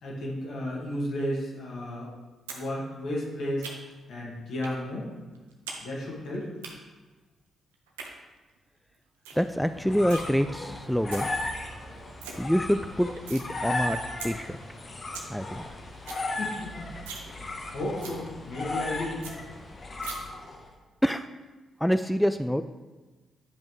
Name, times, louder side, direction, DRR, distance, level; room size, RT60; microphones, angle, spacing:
voice 1, 0.0-2.1 2.5-3.7 4.1-5.1 5.8-6.5 16.4-16.9 17.7-19.2, left 1 dB, 65° left, -4 dB, 2.0 m, -33 dB
sound 1, 2.5-2.6 2.9-4.0 4.6-4.8 5.1-5.8 6.1-6.7 7.7-8.1 8.6-8.7 8.9-9.0 9.2-9.5 9.7-10.2 10.9-11.3 11.7-11.8 12.0-12.3 12.7-13.5 13.8-13.9 14.2-14.3 14.7-14.8 15.0-15.3 15.6-15.7 15.9-16.2 16.6-16.7 17.0-17.3 17.6-17.7 18.0-18.2 18.6-18.7 18.9-19.0 19.2-19.3 20.0-20.1, right 5 dB, 85° right, 0.7 m, -40 dB
voice 2, 9.3-11.3 12.4-14.0 14.2-14.6 15.3-15.6 21.0-21.2 21.8-22.6, equal, ahead, 10 dB, 0.3 m, -26 dB
sound 2, 9.5-20.7, left 2 dB, 40° left, 1.1 m, -36 dB
9.8 x 5.2 x 3.1 m, 1.2 s
hypercardioid pair, 40°, 0 cm